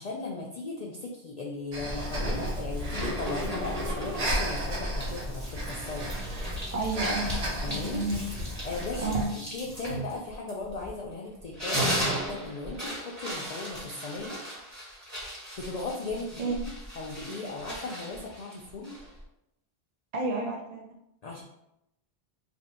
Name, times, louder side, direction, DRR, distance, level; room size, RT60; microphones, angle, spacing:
voice 1, 0.0-6.4 7.6-8.0 8.6-14.4 15.3-16.5 17.0-19.0 21.2-21.4, left 3 dB, 55° left, -2 dB, 0.5 m, -37 dB
Breathing, 1.7-9.2, equal, 75° right, 1.1 m, -33 dB
sound 1, 3.0-4.5 5.0-11.1 11.4-19.2, equal, 15° right, 1.4 m, -37 dB
voice 2, 6.7-7.4 7.7-8.2 9.0-9.3 16.4-16.6 20.1-20.8, right 3 dB, 50° right, 0 dB, 0.5 m, -30 dB
2.8 x 2.6 x 4.2 m, 0.82 s
omnidirectional pair, 1.1 m